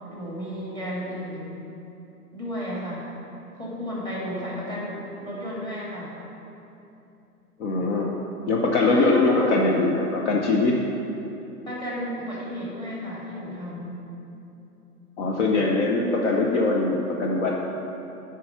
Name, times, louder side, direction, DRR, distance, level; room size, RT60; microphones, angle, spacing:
voice 1, 0.1-1.7 2.3-3.1 3.5-6.2 8.8-9.9 11.7-14.0, equal, 10° left, -5 dB, 2.2 m, -33 dB
voice 2, 7.6-8.1 8.5-10.8 15.2-17.5, left 3 dB, 50° left, -1 dB, 0.9 m, -22 dB
10.5 x 4.8 x 5.8 m, 2.9 s
figure-of-eight pair, 115°, 47 cm